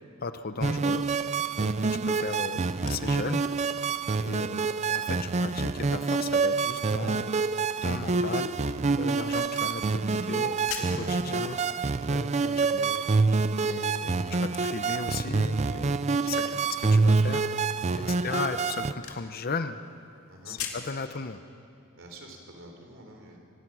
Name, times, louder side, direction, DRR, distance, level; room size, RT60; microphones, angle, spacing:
voice 1, 0.2-1.0 1.6-3.4 4.2-7.3 7.8-8.5 9.0-11.8 12.1-13.0 13.6-17.5 18.2-19.8 20.5-21.4, left 4 dB, 45° left, 10 dB, 0.7 m, -36 dB
sound 1, 0.6-18.9, right 4 dB, 30° right, 0.5 m, -27 dB
sound 2, 2.4-21.0, left 8 dB, 80° left, 2.1 m, -48 dB
voice 2, 16.0-16.6 17.9-18.1 20.3-20.6 22.0-23.4, right 1 dB, 60° right, 2 dB, 3.6 m, -49 dB
24.5 x 17.5 x 6.2 m, 2.5 s
head